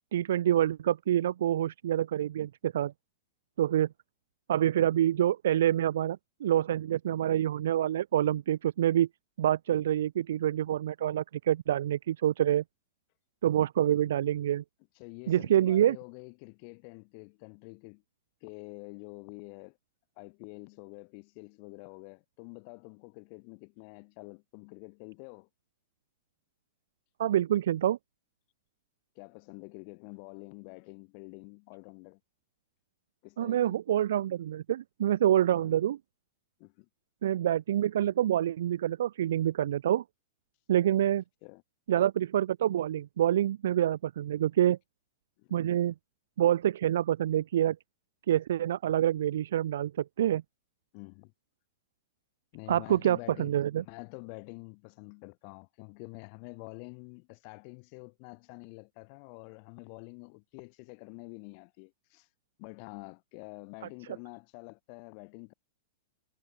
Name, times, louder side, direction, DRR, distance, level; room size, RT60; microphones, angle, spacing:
voice 1, 0.1-2.9 3.6-3.9 4.5-9.1 9.4-12.6 13.4-14.6 15.3-16.0 27.2-28.0 33.4-36.0 37.2-40.0 40.7-41.2 41.9-44.8 45.5-45.9 46.4-47.8 48.3-50.4 52.7-53.8, right 11 dB, 70° right, 2.0 m, -27 dB
voice 2, 15.0-18.0 18.4-19.8 20.2-25.5 29.2-32.2 33.2-33.8 35.3-35.7 36.6-36.9 41.4-41.6 45.4-45.5 50.9-51.3 52.5-62.3 62.6-65.5, left 40 dB or more, 50° left, 3.7 m, -47 dB
hypercardioid pair, 115°, 0 cm